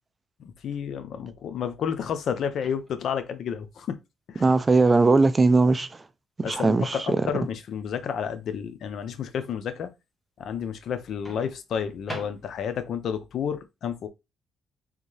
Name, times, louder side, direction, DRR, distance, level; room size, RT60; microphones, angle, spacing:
voice 1, 0.6-4.0 4.3-4.4 6.4-9.9 10.4-14.1, left 7 dB, 65° left, 0.5 m, -31 dB
Microwave oven, 2.5-3.2 5.2-5.4 11.2-12.9, equal, 20° left, 1.2 m, -43 dB
voice 2, 4.4-5.9 6.4-7.3, right 3 dB, 25° right, 0.4 m, -20 dB
3.6 x 2.6 x 3.1 m
cardioid pair, 90°, 0 cm